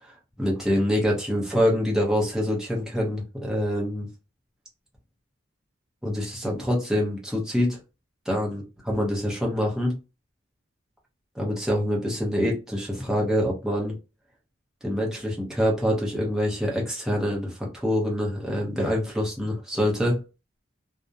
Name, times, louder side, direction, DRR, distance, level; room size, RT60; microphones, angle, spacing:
voice 1, 0.0-4.1 6.0-7.8 8.3-8.6 8.9-9.9 11.3-13.9 14.8-20.2, equal, 5° right, 0.6 m, -25 dB
2.4 x 2.0 x 2.6 m
head